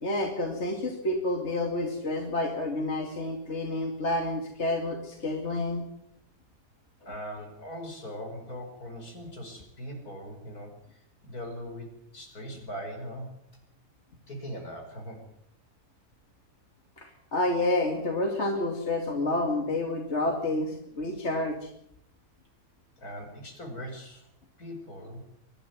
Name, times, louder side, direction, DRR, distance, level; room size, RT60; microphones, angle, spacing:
voice 1, 0.0-5.8 17.0-21.7, left 2 dB, 40° left, 3 dB, 2.6 m, -29 dB
voice 2, 7.0-13.3 14.3-15.2 23.0-24.3 24.6-25.2, equal, 60° left, 3 dB, 5.9 m, -40 dB
23.0 x 12.5 x 9.4 m, 0.76 s
omnidirectional pair, 1.8 m